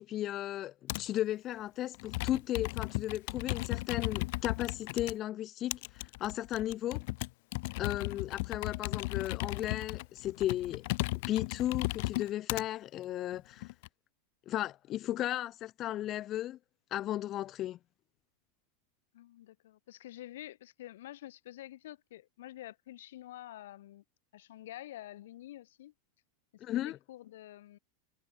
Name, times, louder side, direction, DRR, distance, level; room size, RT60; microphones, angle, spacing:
voice 1, 0.0-7.0 7.8-10.8 11.3-13.7 14.5-16.6 16.9-17.8 26.6-27.0, left 13 dB, 25° left, 2.4 m, -35 dB
Computer keyboard, 0.9-1.2 1.9-5.1 5.7-12.6 13.3-13.9, left 24 dB, 45° left, 1.3 m, -36 dB
voice 2, 19.1-24.0 24.3-25.9 26.7-27.8, left 14 dB, 70° left, 5.6 m, -48 dB
supercardioid pair, 175°, 0 cm